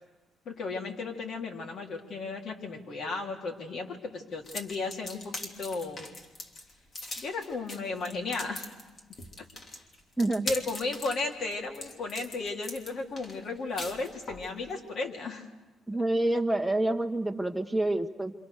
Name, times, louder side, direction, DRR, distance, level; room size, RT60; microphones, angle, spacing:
voice 1, 0.5-6.0 7.2-8.7 9.4-9.5 10.4-15.5, left 3 dB, 60° left, 2 dB, 3.6 m, -34 dB
sound 1, 4.4-14.5, left 2 dB, 45° left, 3.2 m, -41 dB
voice 2, 10.2-10.5 15.9-18.3, right 2 dB, ahead, 4 dB, 1.6 m, -27 dB
28.5 x 26.0 x 6.7 m, 1.2 s
cardioid pair, 90°, 0 cm